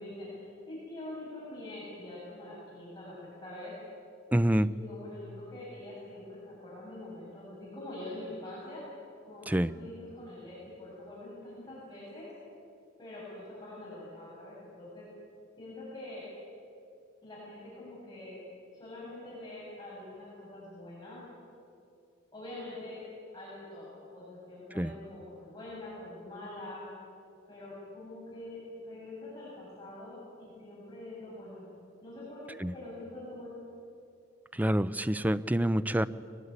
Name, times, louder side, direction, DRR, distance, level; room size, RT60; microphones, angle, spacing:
voice 1, 0.0-3.7 4.7-8.8 9.3-12.3 13.0-15.1 15.6-16.2 17.2-18.4 18.7-21.2 22.3-23.0 23.3-26.9 27.5-31.7 32.0-33.6, left 1 dB, 20° left, -8 dB, 7.3 m, -44 dB
voice 2, 4.3-4.7 9.5-9.7 24.8-24.9 32.6-32.7 34.6-36.1, right 1 dB, 10° right, 14 dB, 0.5 m, -26 dB
22.0 x 21.0 x 9.7 m, 2.6 s
head